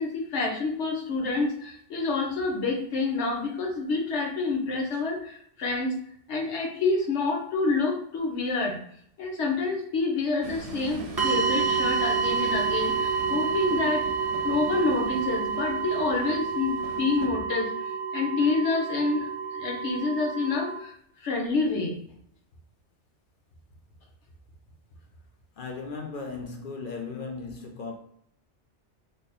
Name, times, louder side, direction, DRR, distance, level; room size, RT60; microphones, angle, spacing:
voice 1, 0.0-6.0 6.3-8.8 9.2-14.1 14.4-17.7 18.1-22.0, left 3 dB, 80° left, 1.2 m, -28 dB
Train, 10.4-17.3, right 4 dB, 70° right, 0.8 m, -41 dB
sound 1, 11.2-20.8, right 5 dB, 30° right, 0.5 m, -29 dB
voice 2, 25.6-27.9, left 4 dB, 55° left, 0.7 m, -36 dB
3.4 x 2.0 x 4.1 m
omnidirectional pair, 1.2 m